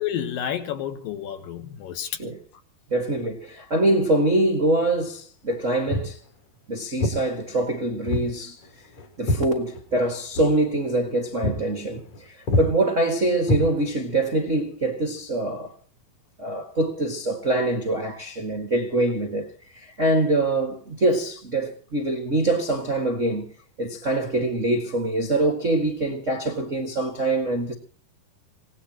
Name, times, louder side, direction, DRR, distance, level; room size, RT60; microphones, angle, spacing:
voice 1, 0.0-2.1, left 10 dB, 70° left, 2.7 m, -30 dB
voice 2, 2.0-2.4 2.9-6.2 6.7-8.6 9.2-15.7 16.4-23.5 23.8-27.7, right 2 dB, 70° right, 0.7 m, -24 dB
Walk footsteps, 5.9-6.2 7.0-7.2 8.1-8.3 8.6-10.1 10.3-10.5 10.9-11.1 11.4-11.6 11.9-12.2 12.5-12.7 13.4-14.1, left 1 dB, 50° left, 4.0 m, -25 dB
26.0 x 18.0 x 3.0 m
omnidirectional pair, 4.6 m